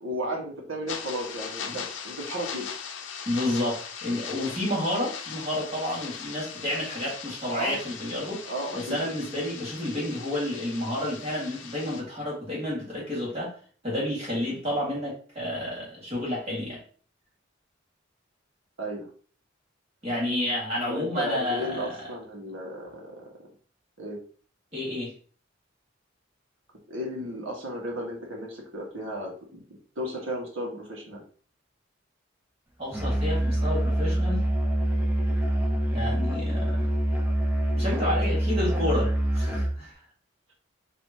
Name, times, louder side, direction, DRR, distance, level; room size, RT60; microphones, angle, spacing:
voice 1, 0.0-2.7 7.5-7.8 8.5-9.0 18.8-19.1 20.9-23.3 24.0-24.2 26.9-29.6 29.9-31.2, equal, 85° right, -1 dB, 1.5 m, -34 dB
sound 1, 0.9-12.0, left 7 dB, 70° left, 0.6 m, -39 dB
voice 2, 3.3-8.5 8.7-13.5 13.8-16.8 20.0-22.1 24.7-25.1 32.8-34.5 35.9-36.8 37.8-40.0, left 1 dB, 30° right, -4 dB, 1.9 m, -30 dB
Musical instrument, 32.9-39.8, equal, 10° right, 0.7 m, -25 dB
4.7 x 3.0 x 2.8 m, 0.42 s
head